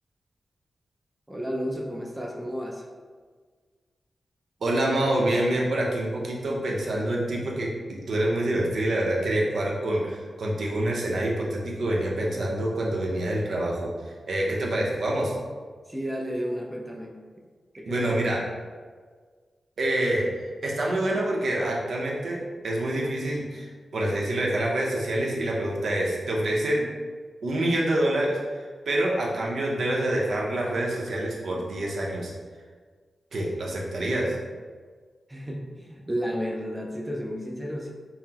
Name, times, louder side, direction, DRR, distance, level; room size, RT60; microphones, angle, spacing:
voice 1, 1.3-2.9 15.9-17.1 17.8-18.4 35.3-37.9, equal, 10° right, -1 dB, 0.4 m, -32 dB
voice 2, 4.6-15.3 17.9-18.4 19.8-20.3 20.6-26.9 27.4-32.3 33.3-34.4, right 1 dB, 75° right, -3 dB, 0.7 m, -26 dB
5.6 x 2.0 x 2.8 m, 1.5 s
wide cardioid pair, 135°, 0 cm